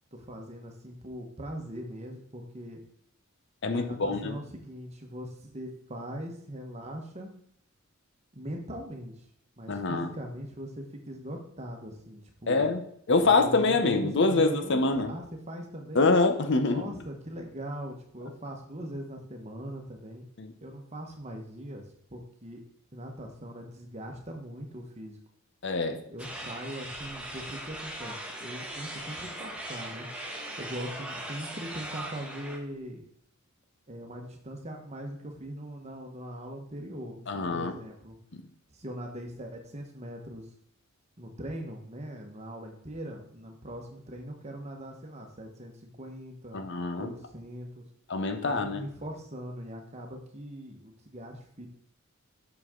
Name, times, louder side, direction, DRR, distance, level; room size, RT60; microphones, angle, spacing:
voice 1, 0.1-2.8 3.6-7.3 8.3-9.2 9.6-12.7 13.2-16.1 16.7-20.2 20.6-22.6 22.9-25.2 26.1-30.1 30.6-33.0 33.9-38.2 38.7-40.5 41.2-46.6 47.0-47.8 48.4-51.7, equal, 30° right, 2 dB, 1.3 m, -41 dB
voice 2, 3.6-4.4 9.7-10.1 12.5-12.8 13.1-15.1 15.9-16.8 20.4-20.5 25.6-26.0 37.3-37.7 46.5-47.1 48.1-48.8, left 3 dB, 55° left, 8 dB, 0.8 m, -25 dB
sound 1, 26.2-32.6, right 1 dB, 5° right, 1.2 m, -39 dB
8.0 x 6.1 x 3.8 m, 0.67 s
head